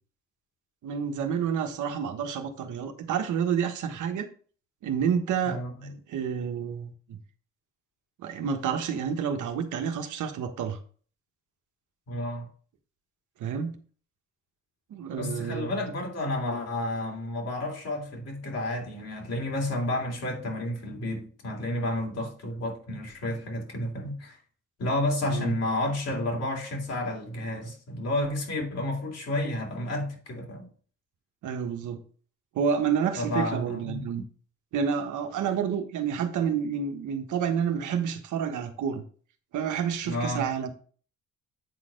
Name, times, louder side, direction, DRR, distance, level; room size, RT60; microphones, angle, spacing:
voice 1, 0.8-4.3 4.8-7.2 8.2-10.8 13.4-13.8 14.9-15.8 25.3-25.5 31.4-32.0 32.5-34.2 34.7-39.0 39.5-40.7, right 7 dB, 80° right, 1.3 m, -29 dB
voice 2, 5.4-5.9 12.1-12.5 15.2-24.4 24.8-30.7 33.2-34.2 40.0-40.5, left 1 dB, 55° left, 3.1 m, -31 dB
8.9 x 4.2 x 5.1 m
cardioid pair, 90°, 30 cm